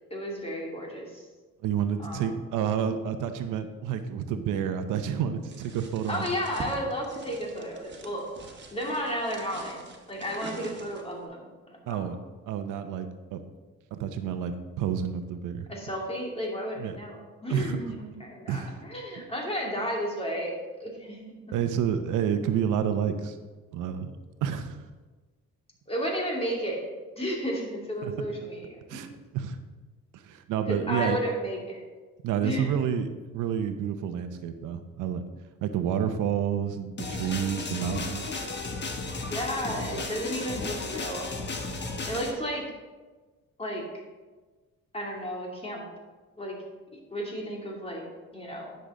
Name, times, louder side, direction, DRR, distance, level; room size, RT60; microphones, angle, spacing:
voice 1, 0.1-1.2 2.0-2.3 6.1-8.2 8.7-12.0 15.7-20.5 20.8-21.4 25.9-26.8 27.1-29.2 30.7-31.8 32.4-32.8 39.3-41.7 42.0-42.7 43.6-43.8 44.9-45.8 46.4-46.6 47.1-48.0 48.3-48.7, equal, 20° left, -2 dB, 2.6 m, -33 dB
voice 2, 1.6-6.3 11.9-12.2 12.5-13.4 13.9-15.7 16.8-17.0 17.5-18.0 18.5-18.8 21.5-23.4 23.7-24.2 24.4-24.8 28.0-28.1 28.9-29.1 29.3-29.6 30.1-31.2 32.2-33.1 33.3-35.2 35.6-38.3, right 8 dB, 90° right, 9 dB, 0.7 m, -29 dB
sound 1, 5.5-11.2, right 4 dB, 35° right, 1.6 m, -44 dB
sound 2, 37.0-42.3, left 3 dB, 35° left, 1.2 m, -34 dB
10.0 x 6.6 x 3.8 m, 1.3 s
cardioid pair, 90°, 30 cm